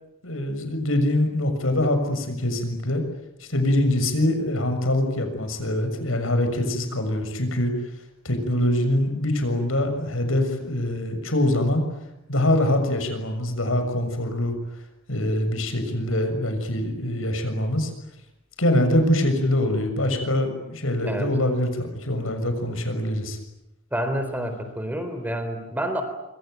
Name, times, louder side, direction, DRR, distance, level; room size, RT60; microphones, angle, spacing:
voice 1, 0.2-3.0 3.4-7.7 8.2-11.8 12.3-14.6 15.1-17.9 18.6-23.4, left 1 dB, 85° left, 7 dB, 6.8 m, -24 dB
voice 2, 23.9-26.0, equal, 10° right, 8 dB, 4.0 m, -28 dB
25.5 x 25.5 x 9.4 m, 0.89 s
head